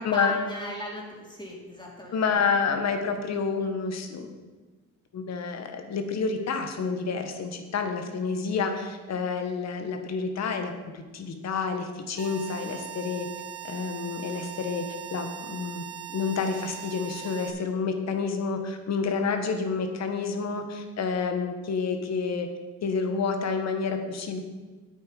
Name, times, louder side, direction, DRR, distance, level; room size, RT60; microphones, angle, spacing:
voice 1, 0.0-2.5, left 1 dB, 15° left, -2 dB, 2.8 m, -37 dB
voice 2, 2.1-4.3 5.1-13.3 13.6-14.9 15.1-15.8 16.1-22.5 22.8-24.4, left 5 dB, 60° left, 6 dB, 1.4 m, -29 dB
sound 1, 12.2-17.5, right 12 dB, 55° right, 1.2 m, -40 dB
9.0 x 8.0 x 5.3 m, 1.3 s
cardioid pair, 90°, 30 cm